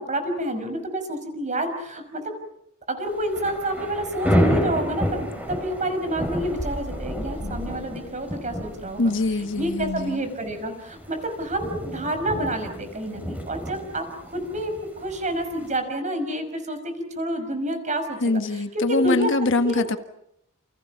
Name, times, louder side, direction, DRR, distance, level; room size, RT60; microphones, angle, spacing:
voice 1, 0.0-2.3 2.9-9.1 9.6-18.4 18.9-19.3 19.6-19.8, right 1 dB, 35° right, 7 dB, 5.9 m, -29 dB
Thunder / Rain, 3.1-15.8, equal, 5° right, 5.4 m, -30 dB
voice 2, 9.0-10.2 18.2-20.0, left 2 dB, 60° left, 8 dB, 1.6 m, -23 dB
30.0 x 29.5 x 5.9 m, 0.75 s
head